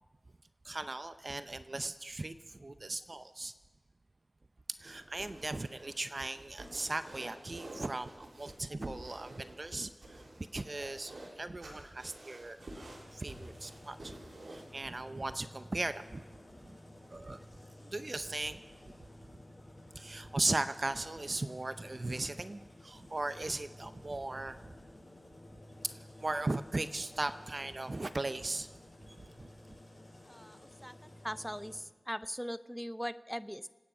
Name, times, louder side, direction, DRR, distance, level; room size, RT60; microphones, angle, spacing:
voice 1, 0.6-3.5 4.8-10.2 10.5-14.2 14.5-16.2 16.6-16.8 17.1-17.4 17.8-18.6 19.9-24.5 26.2-28.7 29.1-29.5, right 2 dB, 45° right, 11 dB, 0.6 m, -38 dB
sound 1, 4.8-14.7, right 1 dB, 90° right, 3.8 m, -50 dB
sound 2, 12.6-31.8, left 1 dB, 45° left, 6.6 m, -54 dB
voice 2, 30.3-30.9 31.2-33.7, equal, ahead, 14 dB, 0.5 m, -40 dB
27.0 x 9.5 x 5.0 m, 1.2 s
wide cardioid pair, 65°, 0 cm